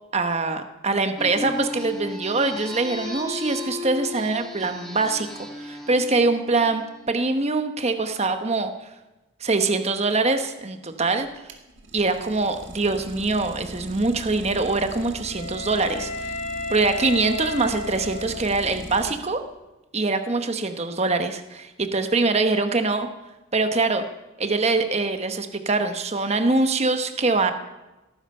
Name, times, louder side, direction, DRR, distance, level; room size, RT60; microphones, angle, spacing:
voice 1, 0.1-8.9 9.4-11.3 11.9-16.4 16.7-19.4 19.9-23.1 23.5-24.0 24.4-27.5, right 3 dB, 30° right, 8 dB, 1.0 m, -23 dB
sound 1, 1.2-7.2, left 1 dB, ahead, 2.7 m, -35 dB
Idling, 11.2-19.5, right 1 dB, 55° right, 2.2 m, -41 dB
Wind instrument woodwind instrument, 14.6-18.8, left 2 dB, 35° left, 2.8 m, -34 dB
17.5 x 14.5 x 5.5 m, 1.0 s
head